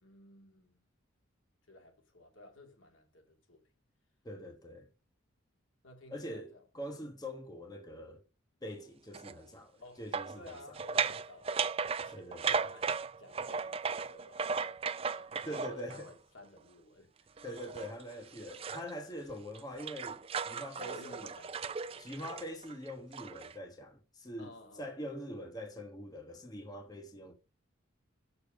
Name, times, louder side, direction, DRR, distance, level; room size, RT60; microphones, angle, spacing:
voice 1, 0.0-0.8 1.7-3.7 5.8-7.1 9.7-17.3 20.7-22.1 24.4-24.9, left 2 dB, 75° left, 2.6 m, -55 dB
voice 2, 4.2-4.9 6.1-8.2 8.6-9.7 10.0-10.6 11.0-11.2 12.1-12.7 15.4-16.1 17.4-21.3 22.0-24.5 24.8-27.3, equal, 20° left, 1.2 m, -44 dB
sound 1, 9.1-9.3 10.1-16.1 17.4-18.9 19.3-23.5, right 5 dB, 30° right, 0.4 m, -36 dB
6.8 x 6.8 x 5.2 m
head